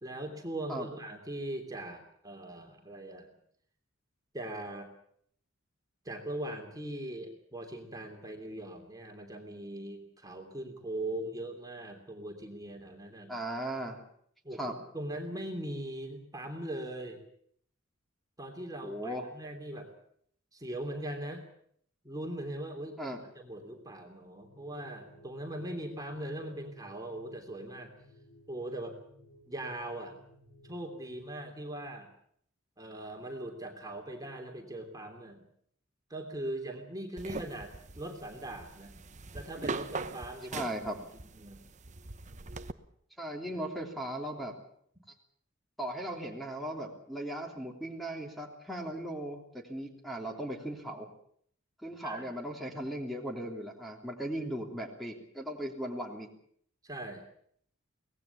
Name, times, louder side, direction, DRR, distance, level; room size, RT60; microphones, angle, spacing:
voice 1, 0.0-3.3 4.3-4.9 6.0-13.3 14.4-17.2 18.4-19.9 20.5-21.5 22.0-27.9 28.5-29.0 29.5-30.2 30.6-32.1 32.8-35.5 36.1-39.0 39.3-40.7 41.3-41.6 52.0-52.3 56.8-57.2, right 1 dB, 15° right, 2 dB, 3.1 m, -40 dB
voice 2, 13.3-14.0 14.6-14.7 18.8-19.2 23.0-23.2 40.5-41.0 43.2-44.5 45.8-51.1 51.8-56.3, right 1 dB, ahead, 1 dB, 3.2 m, -37 dB
sound 1, 24.4-31.2, left 1 dB, 55° left, 4.9 m, -58 dB
sound 2, 37.2-42.7, right 3 dB, 35° right, 1.0 m, -42 dB
24.5 x 19.0 x 7.2 m, 0.65 s
head